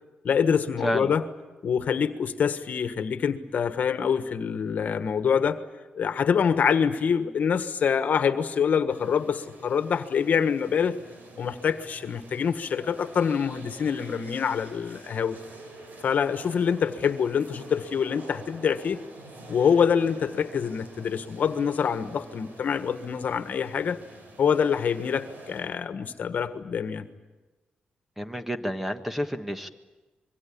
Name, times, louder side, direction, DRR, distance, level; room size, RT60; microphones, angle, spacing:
voice 1, 0.2-1.2 1.6-5.6 5.9-11.0 11.4-15.4 16.0-19.0 19.5-24.0 24.4-27.1, left 7 dB, 60° left, 10 dB, 1.5 m, -25 dB
sound 1, 8.9-25.6, right 2 dB, 70° right, 6.7 m, -47 dB
voice 2, 28.2-29.7, equal, 5° right, 7 dB, 1.5 m, -29 dB
26.0 x 23.0 x 8.7 m, 1.2 s
cardioid pair, 115°, 3 cm